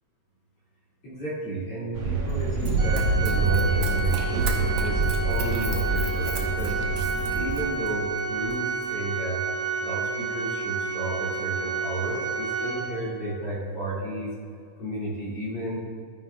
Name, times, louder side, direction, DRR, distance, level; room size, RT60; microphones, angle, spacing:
voice 1, 1.0-5.0 5.2-6.8 7.3-9.4 9.8-14.3 14.8-15.8, right 1 dB, 50° left, -9 dB, 3.1 m, -32 dB
sound 1, 1.9-7.6, right 3 dB, 55° right, 1.0 m, -28 dB
Run, 2.6-7.9 8.5-8.6, right 2 dB, 90° right, 2.4 m, -28 dB
Organ, 2.8-13.4, right 5 dB, 70° right, 3.0 m, -30 dB
12.5 x 9.6 x 2.3 m, 2.4 s
omnidirectional pair, 3.5 m